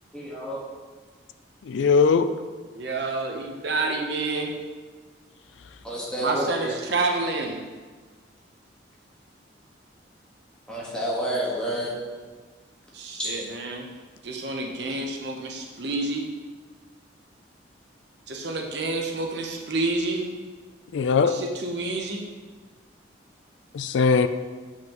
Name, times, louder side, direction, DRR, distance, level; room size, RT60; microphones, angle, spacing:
voice 1, 0.1-0.6 2.3-2.4 5.8-6.7 10.7-11.9 13.2-13.4, right 1 dB, 5° left, -6 dB, 1.3 m, -29 dB
voice 2, 1.7-2.3 20.9-21.3 23.7-24.3, left 5 dB, 75° left, 10 dB, 0.3 m, -20 dB
voice 3, 2.7-4.5 6.2-7.6 12.9-13.9 14.2-16.3 18.3-20.3 21.2-22.2, right 2 dB, 60° right, 2 dB, 0.8 m, -28 dB
7.5 x 5.8 x 3.0 m, 1.4 s
head